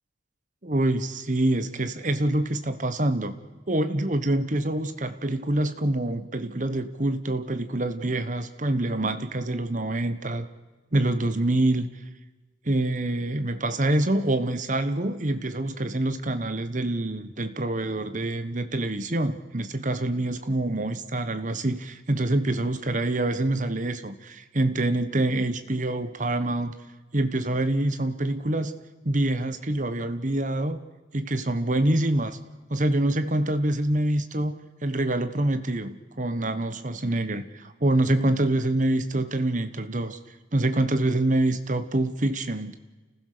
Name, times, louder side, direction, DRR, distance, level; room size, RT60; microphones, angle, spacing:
voice 1, 0.6-3.4 3.7-10.5 10.9-11.9 12.6-26.7 27.1-28.7 29.0-30.8 31.1-32.4 32.7-40.2 40.5-42.8, right 1 dB, 40° right, 10 dB, 1.2 m, -26 dB
29.0 x 15.5 x 6.8 m, 1.2 s
head